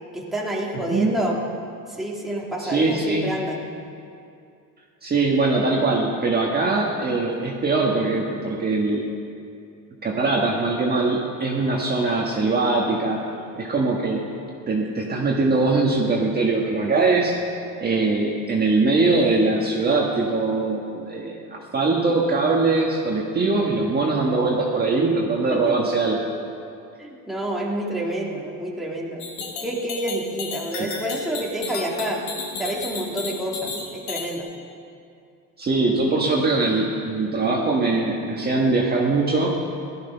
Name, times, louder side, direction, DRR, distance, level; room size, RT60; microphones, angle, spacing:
voice 1, 0.1-1.4 1.9-3.7 25.5-25.7 27.0-29.2 29.6-32.2 32.6-34.5, right 1 dB, ahead, -3 dB, 2.0 m, -28 dB
voice 2, 0.9-1.2 2.6-3.3 5.0-9.0 10.0-13.2 13.6-14.3 14.7-17.4 17.8-26.2 30.8-30.9 35.6-39.5, right 3 dB, 25° right, -2 dB, 1.5 m, -22 dB
sound 1, 29.2-34.4, left 4 dB, 70° left, 3.1 m, -33 dB
17.0 x 12.0 x 5.6 m, 2.5 s
cardioid pair, 135°, 39 cm